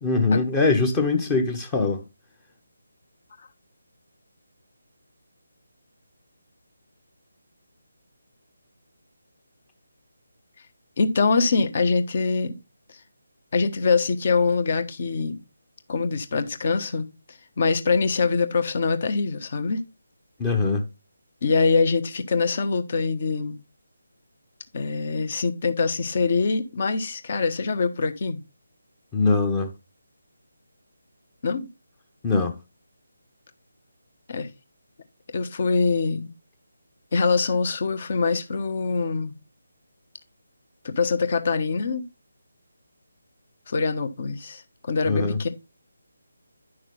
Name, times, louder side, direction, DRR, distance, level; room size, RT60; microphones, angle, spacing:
voice 1, 0.0-2.0 20.4-20.8 29.1-29.7 32.2-32.6 45.0-45.4, left 3 dB, 15° left, 1.0 m, -22 dB
voice 2, 11.0-12.5 13.5-15.4 15.9-17.1 17.6-19.8 21.4-23.6 24.7-28.4 31.4-31.7 34.3-34.5 35.3-36.3 37.1-39.3 40.8-42.0 43.7-45.5, left 4 dB, 40° left, 1.2 m, -24 dB
10.0 x 6.3 x 3.8 m
figure-of-eight pair, 150°, 0 cm